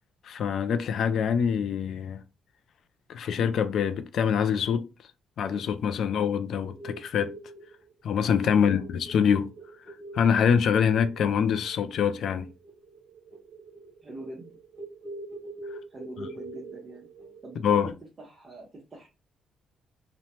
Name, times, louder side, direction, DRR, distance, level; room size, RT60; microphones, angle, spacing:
voice 1, 0.2-2.2 3.1-4.9 5.4-7.3 8.0-9.5 9.9-12.5 17.6-17.9, left 7 dB, 65° left, 0.3 m, -25 dB
sound 1, 5.4-17.6, right 2 dB, 75° right, 0.9 m, -45 dB
voice 2, 8.5-8.8 14.0-14.5 15.9-17.1 17.4-19.1, right 2 dB, 35° right, 0.8 m, -44 dB
2.9 x 2.1 x 2.8 m
cardioid pair, 90°, 0 cm